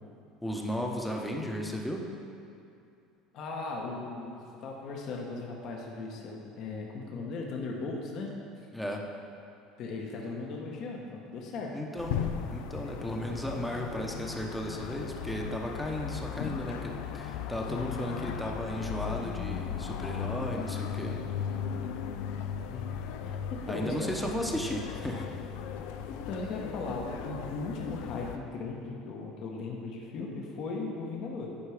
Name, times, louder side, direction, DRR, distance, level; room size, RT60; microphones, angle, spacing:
voice 1, 0.4-2.1 8.7-9.1 11.7-12.2 12.5-21.2 23.7-25.3, equal, 5° left, 1 dB, 0.9 m, -35 dB
voice 2, 3.3-8.3 9.8-11.7 16.0-16.5 17.7-17.9 22.7-22.9 23.2-24.1 26.0-31.5, left 3 dB, 55° left, -1 dB, 1.2 m, -38 dB
sound 1, 12.0-28.4, left 8 dB, 75° left, 0.4 m, -37 dB
10.0 x 4.7 x 4.9 m, 2.6 s
supercardioid pair, 110°, 0 cm